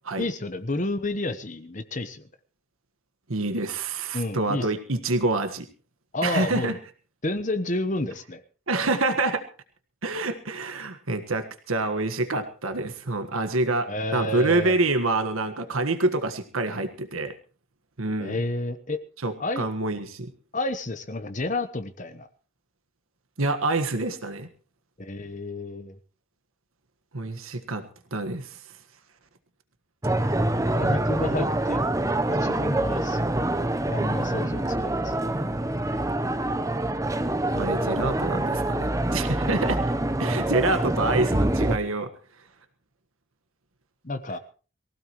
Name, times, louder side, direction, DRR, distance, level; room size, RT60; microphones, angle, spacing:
voice 1, 0.2-2.2 4.1-4.7 6.1-6.7 7.2-8.4 13.9-14.8 18.2-19.0 19.4-19.7 20.5-22.3 25.0-26.0 30.7-32.0 32.3-33.3 33.8-35.1 44.0-44.4, left 2 dB, 35° left, 9 dB, 1.1 m, -30 dB
voice 2, 3.3-5.7 6.2-6.8 8.7-9.4 10.0-17.3 18.0-18.4 19.2-20.3 23.4-24.5 27.1-28.6 37.5-39.8 40.2-42.1, right 2 dB, 80° right, 8 dB, 1.5 m, -27 dB
sound 1, 30.0-41.8, right 1 dB, 15° right, 0.8 m, -25 dB
23.5 x 16.0 x 3.1 m, 0.38 s
head